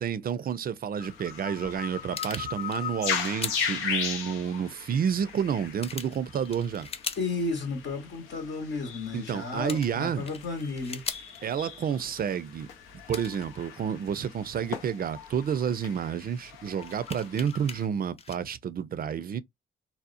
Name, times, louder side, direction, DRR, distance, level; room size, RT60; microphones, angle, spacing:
voice 1, 0.0-6.9 9.1-10.3 11.4-12.7 13.1-19.4, right 8 dB, 45° right, 0.4 m, -30 dB
sound 1, 1.0-17.9, left 7 dB, 85° left, 0.6 m, -38 dB
sound 2, 1.4-1.5 1.6-3.7 4.8-4.9 5.2-5.3 5.8-7.3 7.7-7.8 9.3-9.4 9.6-11.4 12.3-12.4 13.1-13.5 14.6-15.6 16.2-16.3 16.8-17.8 18.2-18.4, left 5 dB, 30° left, 0.5 m, -40 dB
voice 2, 7.2-11.0, left 3 dB, 60° left, 0.9 m, -33 dB
2.7 x 2.0 x 2.5 m
supercardioid pair, 50°, 21 cm